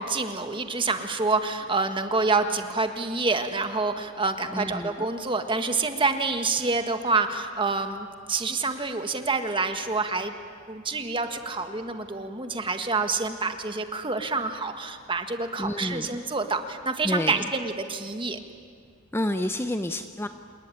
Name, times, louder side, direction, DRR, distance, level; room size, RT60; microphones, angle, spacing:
voice 1, 0.0-10.3 10.7-18.4, right 3 dB, 25° right, 7 dB, 1.6 m, -27 dB
voice 2, 4.5-4.9 15.6-16.2 17.0-17.5 19.1-20.3, left 1 dB, 10° left, 8 dB, 0.6 m, -29 dB
27.5 x 20.0 x 9.8 m, 2.1 s
head